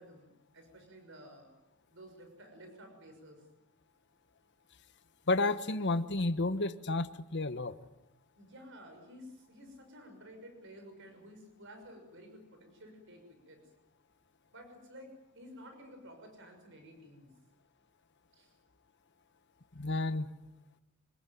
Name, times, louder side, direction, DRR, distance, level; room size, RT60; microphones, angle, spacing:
voice 1, 0.0-1.5 1.9-3.4 8.4-13.6 14.5-17.3 18.3-18.5, equal, 55° right, 5 dB, 6.2 m, -53 dB
voice 2, 5.3-7.7 19.7-20.3, left 2 dB, 50° left, 12 dB, 1.2 m, -31 dB
26.5 x 20.0 x 9.5 m, 0.92 s
head